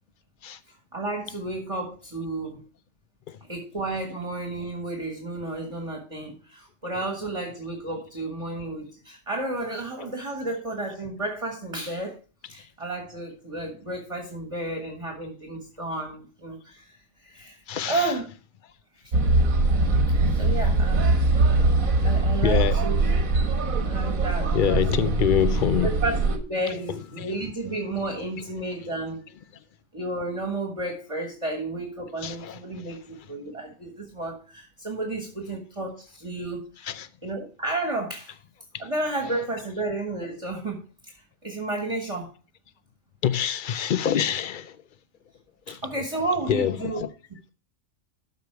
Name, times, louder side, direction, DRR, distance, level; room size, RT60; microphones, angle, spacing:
voice 1, 0.7-2.6 3.5-12.2 12.5-18.3 20.4-21.2 22.0-23.0 23.8-25.1 25.8-29.2 29.9-36.6 37.2-38.3 38.8-40.8 41.1-42.3 45.7-47.0, right 2 dB, 25° right, 1.5 m, -32 dB
voice 2, 17.7-18.2 22.4-22.8 24.5-26.0 26.7-27.5 32.2-32.6 36.8-37.1 39.2-39.5 43.2-44.8 45.7-46.1 46.3-46.9, left 9 dB, 55° left, 0.6 m, -26 dB
sound 1, 19.1-26.4, right 2 dB, 90° right, 1.7 m, -22 dB
12.5 x 5.0 x 4.5 m
omnidirectional pair, 1.4 m